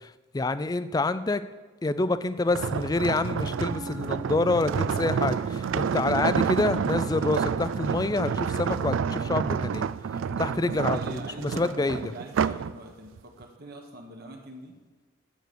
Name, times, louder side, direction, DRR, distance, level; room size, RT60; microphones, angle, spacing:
voice 1, 0.0-1.4 1.8-9.9 10.4-12.0, left 2 dB, 20° left, 13 dB, 0.4 m, -27 dB
sound 1, 2.5-12.7 13.2-13.4, right 6 dB, 75° right, 0.3 m, -29 dB
Wind instrument woodwind instrument, 3.3-10.0, right 2 dB, 15° right, 1.4 m, -46 dB
voice 2, 10.2-14.8, right 2 dB, 50° right, 2 dB, 1.3 m, -44 dB
9.3 x 7.7 x 6.9 m, 1.3 s
head